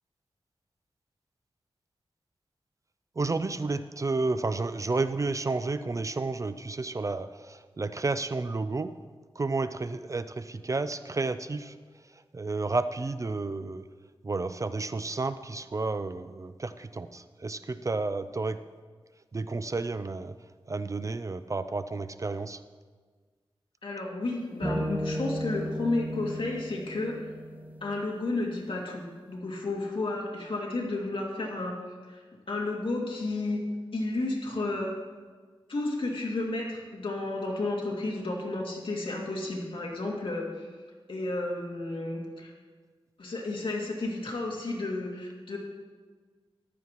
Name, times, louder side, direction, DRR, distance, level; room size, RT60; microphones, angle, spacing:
voice 1, 3.2-8.9 9.4-11.7 12.3-13.8 14.2-18.6 19.3-20.3 20.7-22.6, right 3 dB, 35° right, 12 dB, 0.4 m, -31 dB
voice 2, 23.8-27.3 27.8-29.0 29.3-31.8 32.1-33.6 33.9-34.9 35.7-40.7 41.1-42.5 43.2-45.6, left 2 dB, 65° left, -1 dB, 2.2 m, -32 dB
sound 1, 24.2-24.3 24.6-28.0, equal, 15° right, 0.9 m, -34 dB
14.0 x 11.0 x 3.0 m, 1.5 s
wide cardioid pair, 75°, 10 cm